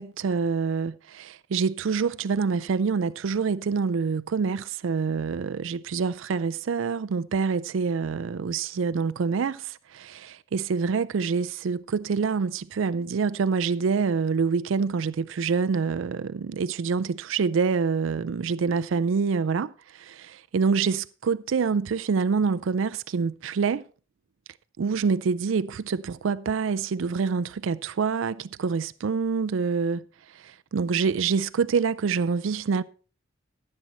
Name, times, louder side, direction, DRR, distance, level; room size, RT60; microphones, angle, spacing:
voice 1, 0.0-23.8 24.8-30.0 30.4-32.8, right 5 dB, 75° right, 0.4 m, -26 dB
14.0 x 7.6 x 4.3 m
head